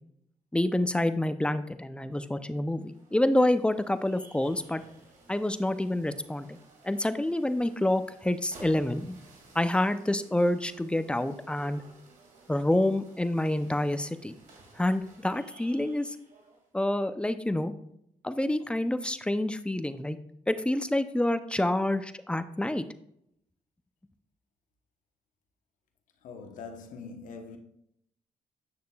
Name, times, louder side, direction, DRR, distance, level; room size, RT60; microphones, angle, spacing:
voice 1, 0.5-4.8 5.3-6.6 6.8-9.2 9.5-11.8 12.5-14.3 14.7-16.2 16.7-17.7 18.2-20.2 20.5-22.8, left 1 dB, 5° left, 0.6 m, -27 dB
sound 1, 2.6-16.7, right 3 dB, 70° right, 2.4 m, -56 dB
voice 2, 26.2-27.6, left 4 dB, 70° left, 1.0 m, -43 dB
8.6 x 6.5 x 2.4 m
supercardioid pair, 60°, 14 cm